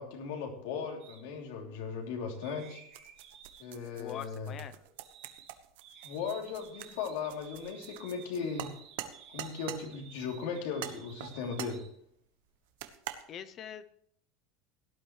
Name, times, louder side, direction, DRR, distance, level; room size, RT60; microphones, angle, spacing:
voice 1, 0.0-2.8 3.6-4.5 6.0-8.7 9.3-11.8, left 6 dB, 75° left, 2 dB, 3.1 m, -37 dB
sound 1, 1.0-1.2 2.4-5.5 5.8-11.9, right 8 dB, 45° right, 2.7 m, -55 dB
sound 2, 2.9-9.8 10.8-11.8 12.8-13.2, right 12 dB, 80° right, 1.2 m, -44 dB
voice 2, 4.0-4.7 13.3-14.0, left 9 dB, 25° left, 13 dB, 0.6 m, -43 dB
17.5 x 11.5 x 3.2 m, 0.68 s
cardioid pair, 175°, 0 cm